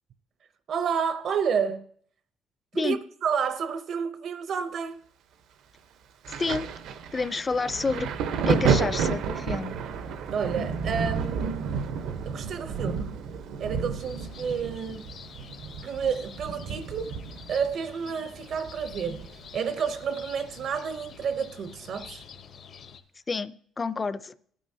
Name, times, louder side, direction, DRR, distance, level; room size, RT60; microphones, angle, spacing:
voice 1, 0.7-1.8 2.7-5.0 10.3-11.9 12.3-13.1 13.6-15.1 15.8-17.2 17.5-19.3 19.5-22.3, right 6 dB, 55° right, 0.6 m, -30 dB
Thunder, 6.2-19.6 19.9-21.2 22.0-22.2, right 6 dB, 85° right, 0.8 m, -31 dB
voice 2, 6.3-6.7 7.1-8.1 8.5-9.8 23.3-24.4, left 4 dB, 25° left, 0.4 m, -29 dB
sound 1, 14.0-23.0, left 7 dB, 50° left, 0.7 m, -48 dB
27.5 x 9.2 x 2.7 m
cardioid pair, 150°, 0 cm